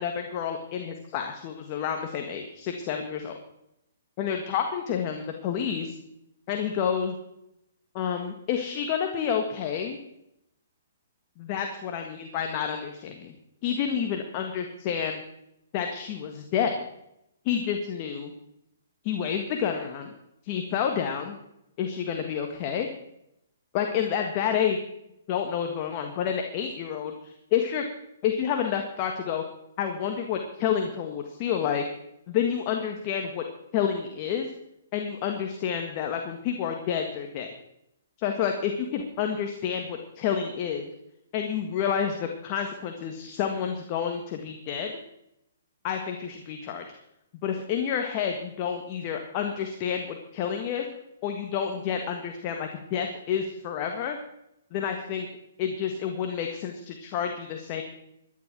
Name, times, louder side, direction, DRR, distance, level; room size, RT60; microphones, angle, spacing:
voice 1, 0.0-3.3 4.2-6.0 6.5-7.2 7.9-10.0 11.4-13.3 13.6-15.2 15.7-16.8 17.4-18.3 19.0-20.1 20.4-21.4 21.8-22.9 23.7-24.8 25.3-27.8 28.2-29.4 29.8-31.8 32.3-33.4 33.7-34.5 34.9-37.5 38.2-40.9 41.3-44.9 45.8-46.8 47.4-50.8 51.2-54.2 54.7-55.3 55.6-57.8, left 8 dB, 35° left, 4 dB, 1.6 m, -29 dB
13.0 x 10.0 x 6.1 m, 0.81 s
hypercardioid pair, 140°, 0 cm